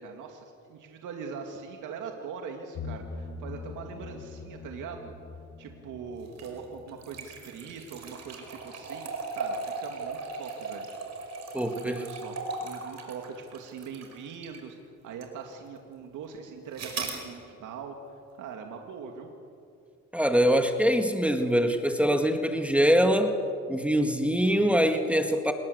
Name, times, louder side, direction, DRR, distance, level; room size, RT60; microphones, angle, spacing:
voice 1, 0.0-5.1 5.6-10.9 11.7-14.8 15.0-17.9 18.4-19.3, right 6 dB, 85° right, 3 dB, 2.4 m, -41 dB
sound 1, 2.7-8.6 8.8-8.9, left 4 dB, 70° left, 6.0 m, -43 dB
sound 2, 6.3-14.7 15.2-15.3 16.8-17.2, right 3 dB, 60° right, 5.1 m, -38 dB
voice 2, 11.5-12.0 20.1-23.3 23.7-25.5, equal, 5° right, 5 dB, 2.0 m, -23 dB
27.5 x 21.0 x 8.1 m, 2.5 s
cardioid pair, 90°, 30 cm